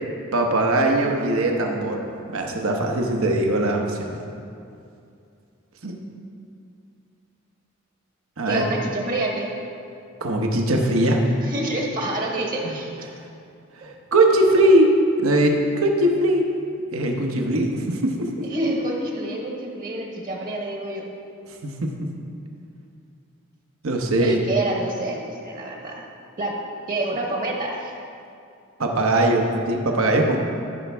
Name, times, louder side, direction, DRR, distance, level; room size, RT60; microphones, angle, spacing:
voice 1, 0.3-2.0 2.3-4.2 5.8-5.9 8.4-8.7 10.2-11.2 12.6-12.7 13.8-16.5 16.9-18.3 21.6-22.1 23.8-24.4 28.8-30.4, right 1 dB, 80° right, 2 dB, 1.0 m, -20 dB
voice 2, 8.5-9.5 11.4-12.9 14.4-14.7 18.4-21.0 24.2-26.0 26.4-26.6 26.9-27.9, right 1 dB, 40° right, 0 dB, 1.1 m, -27 dB
14.0 x 6.0 x 3.5 m, 2.5 s
head